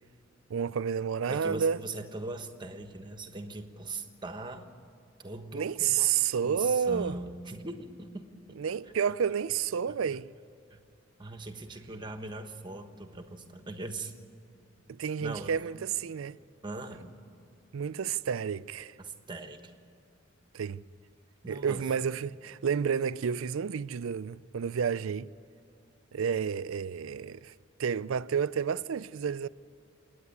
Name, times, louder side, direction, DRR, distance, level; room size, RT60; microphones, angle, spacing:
voice 1, 0.5-1.8 5.5-7.1 8.6-10.3 14.9-16.4 17.7-19.0 20.5-20.8 21.5-25.3 26.1-27.5 27.8-29.5, right 7 dB, 90° right, 0.4 m, -30 dB
voice 2, 1.3-4.7 5.2-6.2 6.4-8.2 10.7-10.8 11.2-14.1 15.2-15.5 16.6-17.1 19.0-19.7 21.4-21.8, right 2 dB, 25° right, 1.2 m, -40 dB
27.5 x 9.7 x 9.7 m
head